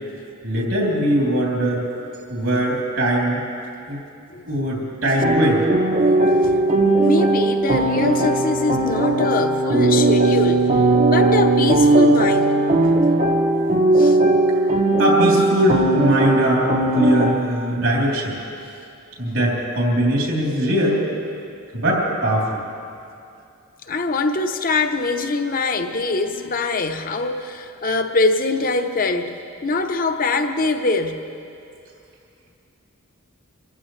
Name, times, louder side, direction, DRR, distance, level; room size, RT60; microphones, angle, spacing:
voice 1, 0.4-1.9 2.3-3.4 3.9-4.0 4.5-5.6 15.0-18.4 19.2-21.0 21.7-22.6, equal, 80° right, -4 dB, 3.4 m, -20 dB
sound 1, 5.2-17.3, right 2 dB, 35° right, 0.7 m, -18 dB
voice 2, 7.0-12.6 13.9-14.2 23.8-29.3 29.6-31.3, left 3 dB, 45° left, 6 dB, 0.8 m, -23 dB
24.5 x 15.0 x 3.2 m, 2.5 s
head